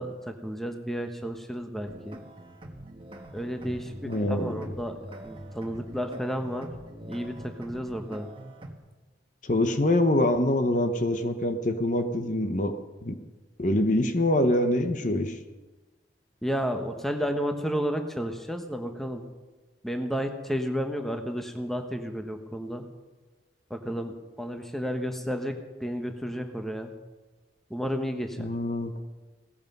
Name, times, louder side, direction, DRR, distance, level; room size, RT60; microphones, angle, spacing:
voice 1, 0.0-2.2 3.3-6.7 7.0-8.3 16.4-19.2 19.8-22.8 23.7-25.5 25.8-26.9 27.7-28.5, equal, ahead, 5 dB, 1.1 m, -32 dB
sound 1, 1.8-8.7, equal, 30° right, 1.5 m, -44 dB
voice 2, 4.0-4.7 9.4-12.7 13.0-13.2 13.6-15.4 28.4-29.0, left 1 dB, 40° left, 8 dB, 1.0 m, -25 dB
17.5 x 14.5 x 5.4 m, 1.2 s
head